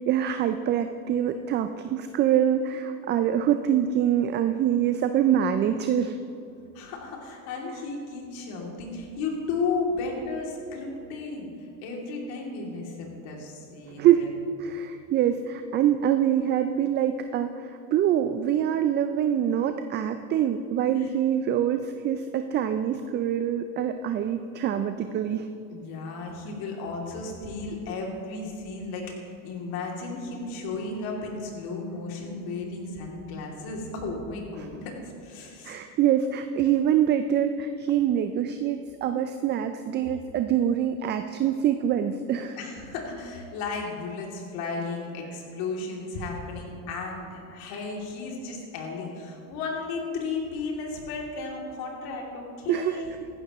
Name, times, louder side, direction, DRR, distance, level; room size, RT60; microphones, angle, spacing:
voice 1, 0.0-6.1 14.0-14.3 14.6-25.5 35.6-42.6 52.7-53.2, right 10 dB, 30° right, 9 dB, 0.3 m, -25 dB
voice 2, 6.7-11.5 11.8-14.3 20.9-21.1 25.7-34.9 35.2-35.8 42.6-53.0, left 3 dB, 60° left, 0 dB, 2.8 m, -34 dB
15.0 x 11.5 x 3.0 m, 2.6 s
supercardioid pair, 105°, 41 cm